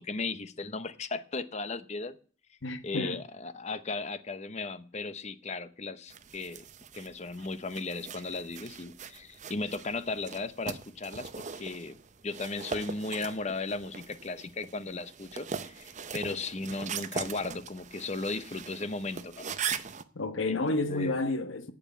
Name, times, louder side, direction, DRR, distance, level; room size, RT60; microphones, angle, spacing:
voice 1, 0.0-2.2 2.8-6.6 6.9-12.0 12.2-19.4 20.5-21.2, left 3 dB, 35° left, 0.7 m, -36 dB
voice 2, 2.6-3.2 20.1-21.7, left 2 dB, 75° left, 1.3 m, -30 dB
sound 1, 6.1-20.0, right 6 dB, 35° right, 0.6 m, -41 dB
8.8 x 8.5 x 8.4 m
head